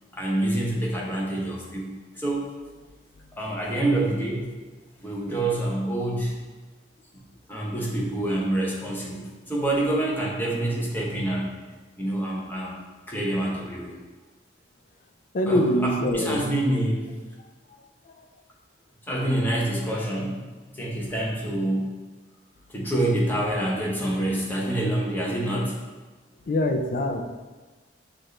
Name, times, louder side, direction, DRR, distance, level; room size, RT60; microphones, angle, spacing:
voice 1, 0.1-2.5 3.3-4.4 5.0-6.3 7.5-11.5 12.0-13.9 15.5-17.1 19.1-20.4 20.7-21.9 22.7-25.7, right 1 dB, 10° left, -4 dB, 0.8 m, -27 dB
voice 2, 15.3-16.5 18.1-18.2 26.5-27.2, left 1 dB, 50° left, 6 dB, 0.4 m, -24 dB
6.0 x 2.4 x 3.2 m, 1.3 s
head